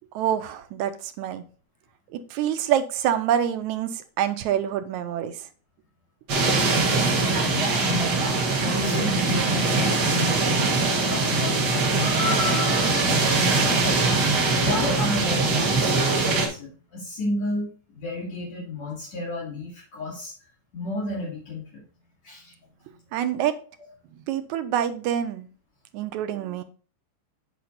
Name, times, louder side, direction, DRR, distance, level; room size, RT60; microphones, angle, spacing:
voice 1, 0.2-1.4 2.1-5.3 23.1-23.5 24.3-25.5 25.9-26.6, right 10 dB, 80° right, 10 dB, 2.0 m, -26 dB
sound 1, 6.3-16.5, right 3 dB, 45° right, 1.5 m, -22 dB
voice 2, 6.5-8.2 8.6-10.7 11.0-14.1 14.5-20.3 20.7-21.8 22.2-22.5 23.8-23.9, left 2 dB, 60° left, -8 dB, 4.1 m, -32 dB
8.5 x 4.5 x 4.1 m, 0.39 s
omnidirectional pair, 3.5 m